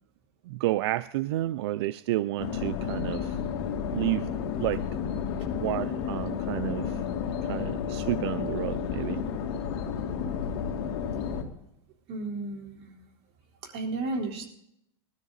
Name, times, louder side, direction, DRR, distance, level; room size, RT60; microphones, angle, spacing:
voice 1, 0.5-3.4 3.9-4.3 4.6-4.8 5.6-7.0 7.4-9.2, right 16 dB, 80° right, 0.4 m, -30 dB
sound 1, 2.4-11.4, left 7 dB, 75° left, 2.5 m, -31 dB
voice 2, 12.1-12.9 13.7-14.5, right 2 dB, 50° right, 3.8 m, -33 dB
20.5 x 13.0 x 4.0 m
supercardioid pair, 130°, 14 cm